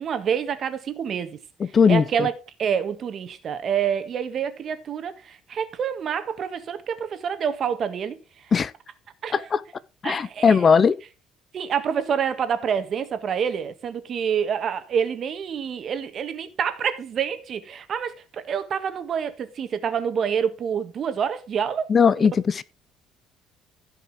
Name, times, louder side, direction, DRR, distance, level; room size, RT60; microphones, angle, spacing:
voice 1, 0.0-1.4 1.9-2.3 2.6-8.2 9.2-9.5 10.0-10.8 11.5-21.9 22.2-22.3, right 7 dB, 45° right, 1.5 m, -27 dB
voice 2, 1.6-2.0 8.5-8.7 9.3-9.6 10.0-11.0 21.9-22.6, left 6 dB, 30° left, 0.5 m, -18 dB
15.5 x 5.4 x 3.6 m
cardioid pair, 130°, 0 cm